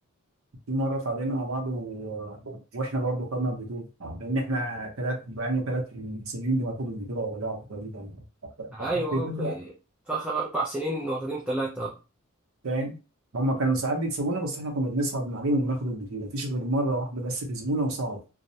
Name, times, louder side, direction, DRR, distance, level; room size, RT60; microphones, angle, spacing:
voice 1, 0.7-8.2 8.6-9.6 12.6-13.0 13.3-18.2, right 1 dB, 65° right, 0.7 m, -29 dB
voice 2, 8.7-9.6 10.1-12.0, right 2 dB, 5° right, 0.4 m, -30 dB
2.3 x 2.0 x 2.7 m
head